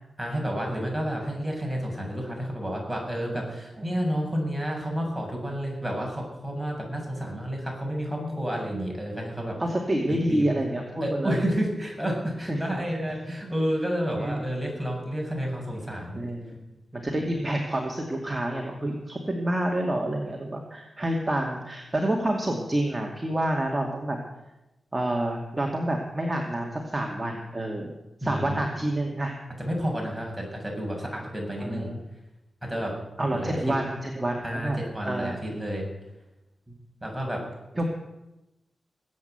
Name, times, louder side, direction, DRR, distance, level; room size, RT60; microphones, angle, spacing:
voice 1, 0.2-9.6 10.0-10.5 11.0-16.2 28.2-28.7 29.6-31.9 32.6-32.9 33.3-33.6 34.4-35.9 37.0-37.4, equal, 5° right, -1 dB, 7.1 m, -30 dB
voice 2, 8.1-8.6 9.6-11.4 12.5-12.6 12.9-13.0 14.1-14.4 16.2-16.6 16.9-24.2 24.9-27.9 28.2-29.4 31.6-32.0 33.2-34.8 35.0-35.4 37.8-37.9, right 1 dB, 20° right, 0 dB, 2.4 m, -28 dB
20.0 x 8.6 x 8.1 m, 0.99 s
cardioid pair, 60°, 0 cm